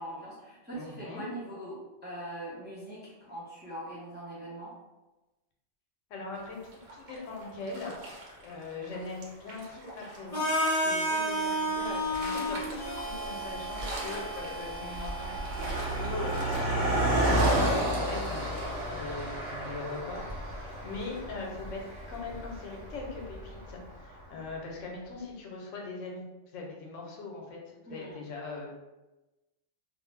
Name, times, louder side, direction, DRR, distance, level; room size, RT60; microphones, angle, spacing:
voice 1, 0.0-4.7 27.9-28.2, right 1 dB, 10° right, -8 dB, 0.5 m, -42 dB
voice 2, 0.7-1.2 6.1-8.0 8.4-10.5 10.8-20.2 20.6-21.8 22.1-26.3 26.5-28.7, left 3 dB, 85° left, -1 dB, 1.0 m, -41 dB
sound 1, 6.3-18.9, right 1 dB, 85° right, 1.1 m, -43 dB
Harmonica, 10.3-18.2, equal, 40° left, 0.5 m, -33 dB
Car passing by, 12.1-12.2 13.0-13.3 13.5-23.9, right 1 dB, 55° right, 0.9 m, -31 dB
2.5 x 2.1 x 3.2 m, 1.1 s
omnidirectional pair, 1.3 m